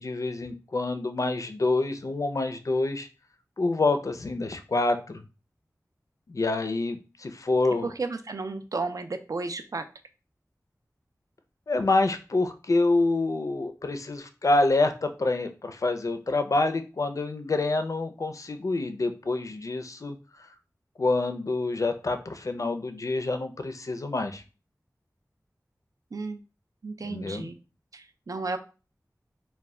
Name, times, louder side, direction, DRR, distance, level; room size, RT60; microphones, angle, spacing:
voice 1, 0.0-3.1 3.6-5.3 6.3-7.9 11.7-20.5 21.0-24.4 27.0-27.5, left 2 dB, 55° left, 8 dB, 0.4 m, -27 dB
voice 2, 7.8-9.8 26.1-26.4 26.8-27.6 27.9-28.6, right 3 dB, 60° right, 8 dB, 0.3 m, -33 dB
2.1 x 2.1 x 3.5 m, 0.33 s
wide cardioid pair, 45°, 7 cm